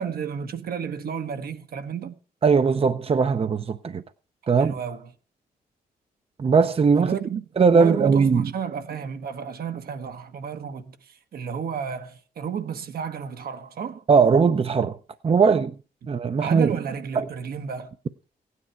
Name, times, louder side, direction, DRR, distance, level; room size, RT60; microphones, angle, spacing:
voice 1, 0.0-2.2 4.5-5.1 7.0-7.4 7.7-14.0 16.4-17.9, right 7 dB, 70° right, 1.2 m, -32 dB
voice 2, 2.4-4.0 4.5-4.7 6.4-7.2 7.6-8.5 14.1-15.0 15.2-15.7 16.1-16.8 17.2-17.3, right 5 dB, 40° right, 0.6 m, -19 dB
16.0 x 9.7 x 4.5 m
cardioid pair, 85°, 16 cm